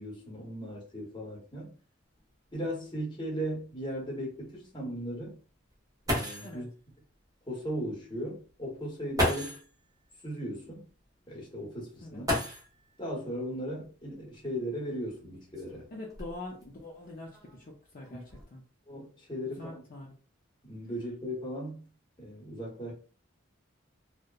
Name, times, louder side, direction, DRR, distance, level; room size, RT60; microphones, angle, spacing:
voice 1, 0.0-1.7 2.5-5.4 6.1-6.7 7.5-9.6 10.2-10.8 11.3-12.2 13.0-15.8 18.1-18.2 18.9-19.7 20.6-21.8 22.2-22.9, equal, 20° left, 0.9 m, -37 dB
sound 1, 2.2-2.3 2.7-2.8 3.4-3.5 5.7-5.8 6.1-6.6 7.9-8.0 9.1-9.7 12.2-13.0 14.3-14.4 15.2-16.6 17.3-17.7 18.0-18.4, left 1 dB, 15° right, 0.7 m, -32 dB
voice 2, 15.9-18.6 19.6-20.2, left 2 dB, 45° left, 0.5 m, -44 dB
2.7 x 2.1 x 2.3 m
head